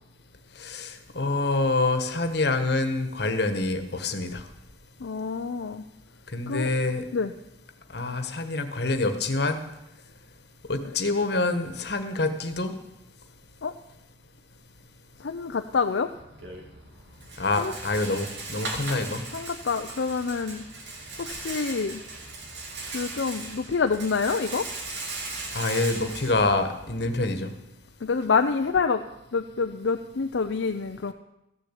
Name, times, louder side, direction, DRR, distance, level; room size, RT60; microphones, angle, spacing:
voice 1, 0.6-4.4 6.3-7.0 7.9-9.6 10.7-12.7 17.4-19.2 25.5-27.5, left 2 dB, 60° left, 8 dB, 1.3 m, -26 dB
voice 2, 5.0-5.8 6.5-6.7 7.1-7.3 13.6-13.7 15.2-16.1 17.6-17.7 19.3-20.7 21.2-22.0 22.9-24.7 28.0-29.0 29.3-31.1, left 5 dB, 75° left, 6 dB, 0.5 m, -27 dB
Rattle, 16.1-27.2, right 3 dB, 70° right, 2.4 m, -38 dB
14.5 x 7.0 x 8.2 m, 0.90 s
head